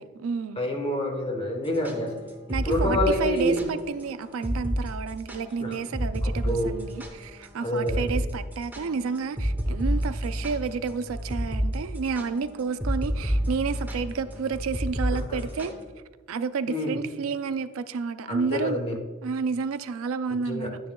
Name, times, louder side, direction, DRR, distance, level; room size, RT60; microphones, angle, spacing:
voice 1, 0.0-0.6 2.5-15.7 16.3-18.8 19.2-20.8, right 5 dB, 75° right, 0.4 m, -30 dB
voice 2, 0.6-2.2 2.5-3.6 5.6-5.8 6.2-6.7 7.6-8.2 15.3-15.4 16.7-17.0 18.3-19.0 20.3-20.7, left 1 dB, 30° left, 1.3 m, -27 dB
sound 1, 1.7-3.7 4.0-4.1 4.4-4.8 5.1-7.5 7.9-8.2 8.5-15.8, equal, 10° right, 1.0 m, -29 dB
11.0 x 9.4 x 2.3 m
head